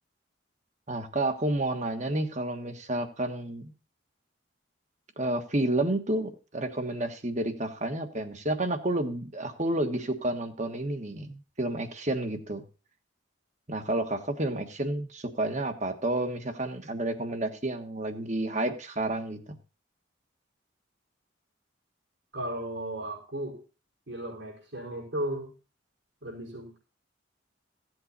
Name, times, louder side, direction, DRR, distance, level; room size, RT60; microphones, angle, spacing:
voice 1, 0.9-3.7 5.2-12.6 13.7-19.4, right 1 dB, 35° right, 8 dB, 1.4 m, -30 dB
voice 2, 22.3-23.6 24.1-25.5 26.2-26.8, right 1 dB, 70° right, -2 dB, 4.9 m, -35 dB
15.5 x 7.9 x 4.1 m, 0.34 s
head